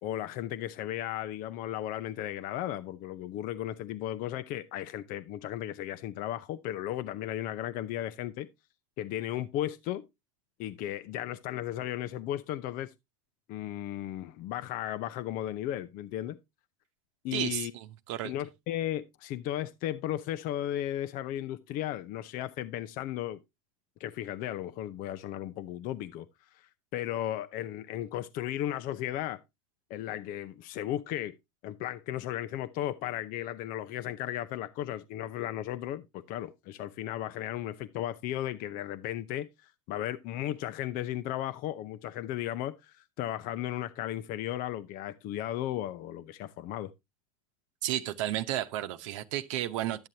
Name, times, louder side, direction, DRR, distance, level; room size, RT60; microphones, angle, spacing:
voice 1, 0.0-8.5 9.0-10.0 10.6-12.9 13.5-16.4 17.2-17.7 18.2-23.4 24.0-26.3 26.5-29.4 29.9-31.3 31.6-46.9, left 12 dB, 55° left, 0.7 m, -35 dB
voice 2, 17.3-18.3 47.8-50.1, right 13 dB, 75° right, 0.9 m, -33 dB
12.0 x 7.5 x 2.7 m
supercardioid pair, 95°, 17 cm